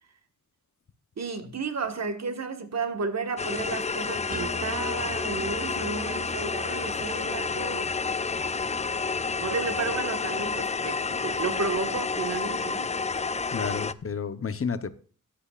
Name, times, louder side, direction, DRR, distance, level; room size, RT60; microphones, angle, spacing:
voice 1, 1.2-7.9 9.4-12.9, right 4 dB, 55° right, 1.5 m, -32 dB
sound 1, 3.4-13.9, left 4 dB, 20° left, 0.4 m, -30 dB
sound 2, 4.3-10.1, equal, 25° right, 1.1 m, -43 dB
voice 2, 13.5-15.0, left 6 dB, 45° left, 0.9 m, -31 dB
15.5 x 10.5 x 2.4 m
wide cardioid pair, 130°, 32 cm